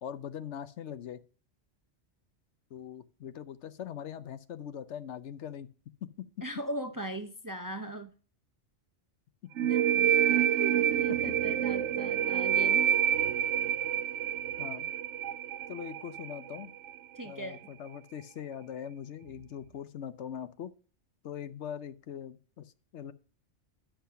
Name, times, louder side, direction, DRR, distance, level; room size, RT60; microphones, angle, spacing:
voice 1, 0.0-1.2 2.7-5.7 6.0-6.3 9.4-9.5 10.8-10.9 14.6-14.9 15.7-16.7 17.2-20.7 21.2-23.1, left 9 dB, 75° left, 13 dB, 1.0 m, -41 dB
voice 2, 6.4-8.1 9.7-9.8 10.6-13.0 17.1-17.6, right 1 dB, 20° right, 6 dB, 0.6 m, -39 dB
sound 1, 9.6-17.0, right 10 dB, 80° right, 0.9 m, -28 dB
10.0 x 5.8 x 5.6 m, 0.40 s
omnidirectional pair, 1.2 m